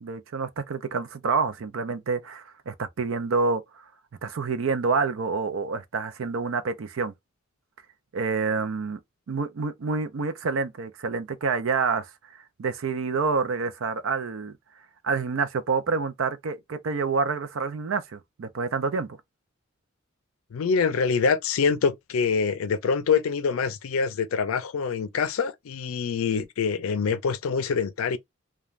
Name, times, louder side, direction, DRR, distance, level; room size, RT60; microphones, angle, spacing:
voice 1, 0.0-3.6 4.2-7.1 8.1-9.0 9.3-12.1 12.6-14.5 15.0-19.1, right 4 dB, 70° right, 0.5 m, -27 dB
voice 2, 20.5-28.2, left 5 dB, 85° left, 0.4 m, -25 dB
2.4 x 2.2 x 3.1 m
head